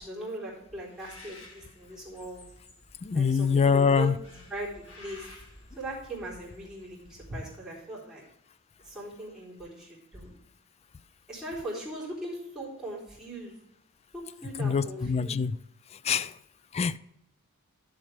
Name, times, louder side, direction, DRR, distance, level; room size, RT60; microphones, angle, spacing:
voice 1, 0.0-2.4 3.1-5.3 5.8-8.2 8.8-10.3 11.3-13.6 14.1-15.4, right 1 dB, 5° right, 3.8 m, -39 dB
Bird, 0.9-7.3, left 2 dB, 60° left, 2.2 m, -52 dB
voice 2, 3.0-4.1 14.6-15.5 16.0-16.3 16.7-17.0, left 6 dB, 30° left, 0.3 m, -24 dB
11.5 x 7.2 x 3.4 m
head